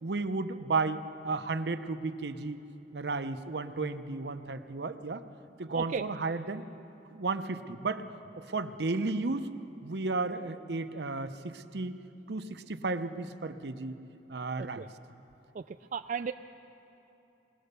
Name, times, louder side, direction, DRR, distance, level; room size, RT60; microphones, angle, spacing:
voice 1, 0.0-2.6 2.9-5.2 5.6-6.7 7.1-8.0 8.3-9.5 9.8-12.0 12.3-14.0 14.3-14.9, right 3 dB, 70° right, 10 dB, 0.8 m, -33 dB
voice 2, 5.7-6.0 14.6-14.9 15.5-16.3, right 6 dB, 45° right, 8 dB, 0.3 m, -35 dB
21.5 x 18.5 x 6.8 m, 3.0 s
head